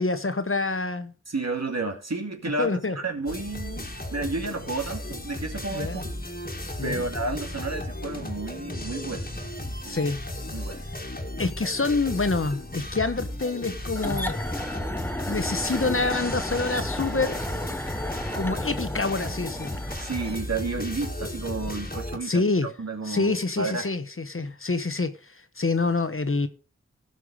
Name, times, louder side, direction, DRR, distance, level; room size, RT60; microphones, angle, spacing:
voice 1, 0.0-1.1 2.6-3.0 5.7-6.0 6.8-7.0 9.8-10.2 11.4-14.5 15.2-17.4 18.3-19.7 22.2-22.7 23.0-26.5, left 3 dB, 45° left, 1.2 m, -27 dB
voice 2, 1.3-6.1 6.8-9.3 9.8-10.0 10.5-10.8 15.8-16.0 19.9-23.9, right 3 dB, 65° right, 2.4 m, -32 dB
sound 1, 3.3-22.2, left 1 dB, 30° left, 2.0 m, -35 dB
sound 2, 14.0-20.4, left 1 dB, 5° left, 1.1 m, -33 dB
17.0 x 6.0 x 4.8 m
wide cardioid pair, 60°, 29 cm